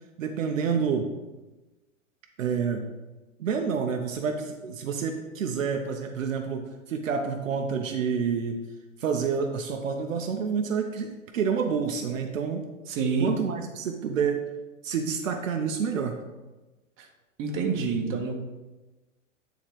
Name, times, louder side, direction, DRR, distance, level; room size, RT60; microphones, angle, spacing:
voice 1, 0.2-1.1 2.4-2.8 3.4-8.6 9.0-12.6 13.2-14.4 14.8-16.2, right 6 dB, 75° right, 4 dB, 0.9 m, -28 dB
voice 2, 12.9-13.3 17.0-17.1 17.4-18.4, right 5 dB, 30° right, 1 dB, 1.4 m, -27 dB
9.7 x 4.0 x 4.7 m, 1.1 s
hypercardioid pair, 110°, 40 cm